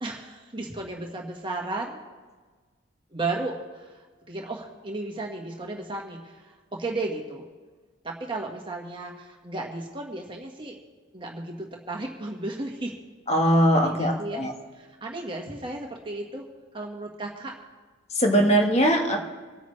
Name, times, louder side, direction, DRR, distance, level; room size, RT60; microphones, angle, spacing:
voice 1, 0.0-2.0 3.1-3.9 4.3-7.4 8.0-10.8 11.1-12.9 13.7-14.4 14.8-16.4 16.7-17.5, right 2 dB, 25° right, 0 dB, 1.5 m, -34 dB
voice 2, 13.3-14.5 18.1-19.2, equal, 35° left, 3 dB, 1.5 m, -21 dB
26.5 x 9.2 x 3.3 m, 1.4 s
head